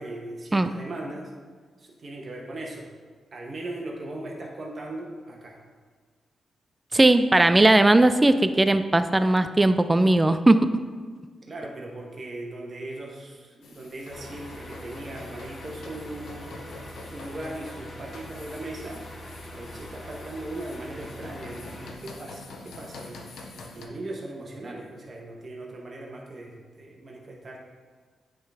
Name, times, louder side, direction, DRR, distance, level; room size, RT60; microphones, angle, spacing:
voice 1, 0.0-1.3 1.8-2.9 3.3-5.6 11.5-16.7 17.0-27.6, right 1 dB, 50° right, -1 dB, 1.1 m, -39 dB
voice 2, 6.9-10.7, right 2 dB, 25° right, 11 dB, 0.4 m, -18 dB
sound 1, 13.6-23.9, left 3 dB, 75° left, 0.7 m, -46 dB
sound 2, 14.1-21.9, equal, 30° left, 1.1 m, -42 dB
8.6 x 3.8 x 3.5 m, 1.6 s
supercardioid pair, 45°, 0 cm